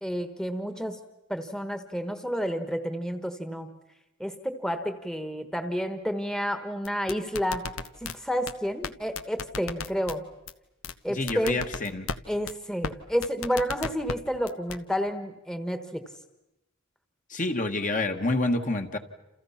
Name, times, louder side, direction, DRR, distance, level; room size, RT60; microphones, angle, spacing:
voice 1, 0.0-1.0 1.3-3.8 4.2-7.7 8.0-10.3 11.0-11.6 12.3-16.0, equal, 5° left, 8 dB, 1.3 m, -30 dB
sound 1, 6.8-8.1 8.5-8.6 8.8-8.9 9.2-10.2 10.5-10.6 10.8-10.9 11.3-12.2 12.5-12.6 12.8-12.9 13.2-14.2 14.5-14.8, left 4 dB, 80° left, 1.2 m, -33 dB
voice 2, 11.1-12.1 17.3-19.0, left 2 dB, 40° left, 5 dB, 1.7 m, -28 dB
29.0 x 29.0 x 5.8 m, 0.92 s
head